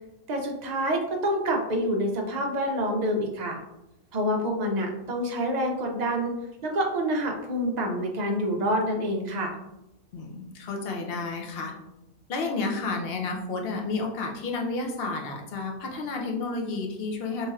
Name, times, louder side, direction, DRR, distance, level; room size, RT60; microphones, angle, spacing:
voice 1, 0.3-3.6 4.1-6.3 6.6-9.5, equal, 50° right, 1 dB, 0.5 m, -27 dB
voice 2, 10.1-11.7 12.3-17.5, left 3 dB, 55° left, 2 dB, 0.7 m, -31 dB
4.1 x 3.2 x 2.3 m, 0.90 s
omnidirectional pair, 1.4 m